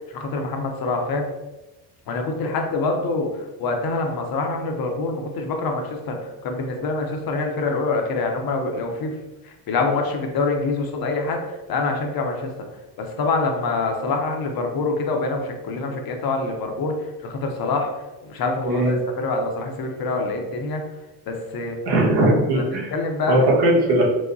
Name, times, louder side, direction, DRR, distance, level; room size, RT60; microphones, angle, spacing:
voice 1, 0.1-1.3 2.1-9.2 9.4-12.5 13.0-17.9 18.2-20.8 21.3-21.8 22.5-22.6 22.9-23.4, left 3 dB, 55° left, 3 dB, 0.7 m, -25 dB
voice 2, 18.6-19.0 21.9-22.9 23.3-24.0, right 1 dB, 70° right, -3 dB, 1.2 m, -19 dB
4.7 x 2.1 x 2.6 m, 1.1 s
cardioid pair, 100°, 42 cm